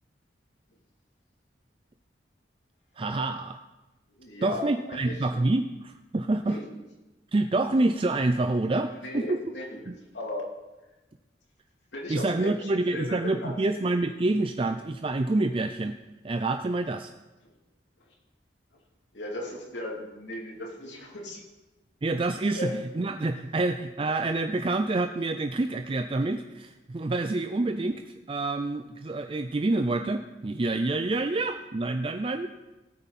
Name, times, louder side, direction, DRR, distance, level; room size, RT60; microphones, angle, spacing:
voice 1, 3.0-3.6 4.4-6.6 7.3-9.4 9.9-10.0 12.1-15.9 16.2-17.1 22.0-28.0 28.3-32.5, right 2 dB, 30° right, 7 dB, 0.4 m, -27 dB
voice 2, 4.2-5.2 6.4-6.7 8.9-9.9 10.1-10.5 11.9-13.6 19.1-21.4 22.5-22.8, left 1 dB, 85° left, -1 dB, 3.0 m, -37 dB
17.5 x 9.0 x 4.2 m, 1.1 s
head